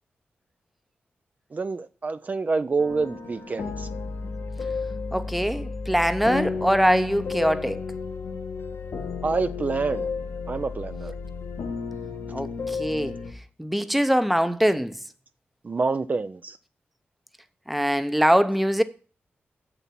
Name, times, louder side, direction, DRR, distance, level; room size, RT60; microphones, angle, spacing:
voice 1, 1.5-3.9 9.2-10.1 10.5-11.1 15.6-16.6, right 4 dB, 40° right, 0.5 m, -27 dB
sound 1, 2.8-13.3, left 4 dB, 80° left, 1.4 m, -33 dB
voice 2, 5.1-7.8 12.3-13.2 13.6-15.0 17.7-18.8, equal, ahead, 0.7 m, -23 dB
7.3 x 6.9 x 4.3 m
cardioid pair, 80°, 4 cm